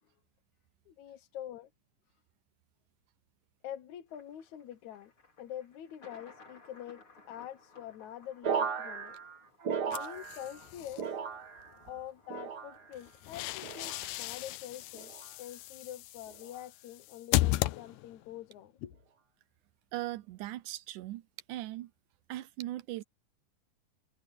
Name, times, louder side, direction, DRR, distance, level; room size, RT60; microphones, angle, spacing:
voice 1, 0.9-1.7 3.6-5.1 5.4-9.2 9.9-11.2 11.8-19.0, left 11 dB, 70° left, 2.4 m, -45 dB
Thunder, 4.1-16.4, left 3 dB, 40° left, 5.3 m, -61 dB
sound 1, 8.4-10.7 10.9-11.8 12.3-13.0 13.6-14.1 14.9-15.3 16.3-16.6, right 6 dB, 45° right, 1.5 m, -36 dB
sound 2, 9.9-11.0 12.9-18.3, left 17 dB, 90° left, 2.2 m, -35 dB
voice 2, 19.9-21.2 21.5-21.9 22.3-23.0, right 15 dB, 85° right, 2.3 m, -39 dB
omnidirectional pair, 3.5 m